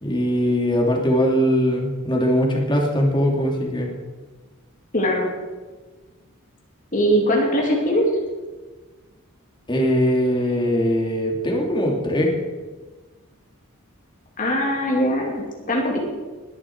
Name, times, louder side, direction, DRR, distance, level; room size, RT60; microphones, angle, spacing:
voice 1, 0.0-3.9 9.7-12.3, equal, 20° left, 0 dB, 2.8 m, -21 dB
voice 2, 4.9-5.3 6.9-8.0 14.4-16.0, equal, 40° left, -1 dB, 2.8 m, -21 dB
20.5 x 11.0 x 4.7 m, 1.3 s
head